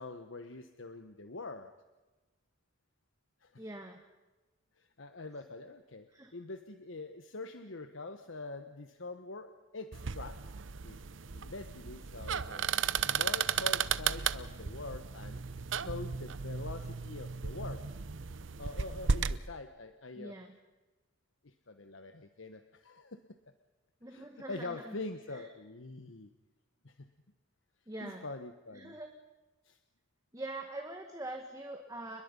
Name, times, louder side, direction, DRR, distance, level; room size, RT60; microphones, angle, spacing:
voice 1, 0.0-1.7 3.4-3.6 4.8-10.4 10.8-11.0 11.3-15.4 15.8-17.9 18.6-20.4 21.4-23.3 24.1-26.3 26.8-27.1 28.0-29.0 29.6-29.8, left 3 dB, 85° left, 8 dB, 1.2 m, -44 dB
voice 2, 3.6-4.0 6.1-6.3 20.2-20.5 24.0-25.0 25.3-25.5 27.9-28.3 28.7-29.1 30.3-32.2, right 2 dB, 20° right, 3 dB, 1.8 m, -43 dB
sound 1, 9.9-19.4, right 6 dB, 75° right, 0.8 m, -35 dB
29.5 x 22.0 x 5.5 m, 1.2 s
head